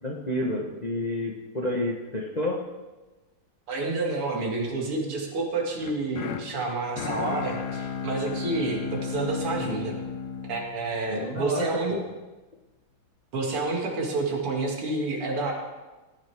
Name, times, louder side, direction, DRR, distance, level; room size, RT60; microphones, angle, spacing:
voice 1, 0.0-2.6 11.1-12.0, left 1 dB, 30° left, -1 dB, 0.8 m, -30 dB
voice 2, 3.7-10.0 10.5-11.9 13.3-15.5, right 3 dB, 90° right, 0 dB, 2.9 m, -29 dB
sound 1, 5.8-11.9, left 6 dB, 70° left, 0.9 m, -34 dB
17.0 x 9.7 x 3.5 m, 1.2 s
omnidirectional pair, 2.4 m